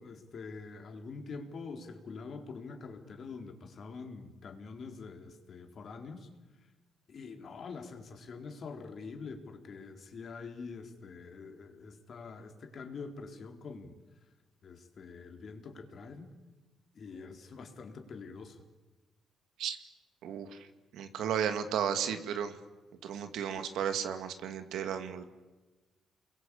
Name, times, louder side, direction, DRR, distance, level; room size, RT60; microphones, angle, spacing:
voice 1, 0.0-6.3 7.1-14.0 14.6-16.4 16.9-18.6, left 4 dB, 55° left, 5 dB, 4.0 m, -45 dB
voice 2, 20.2-20.6 20.9-22.5 23.0-25.2, right 8 dB, 80° right, 8 dB, 2.4 m, -34 dB
29.5 x 22.5 x 8.6 m, 1.2 s
cardioid pair, 90°, 0 cm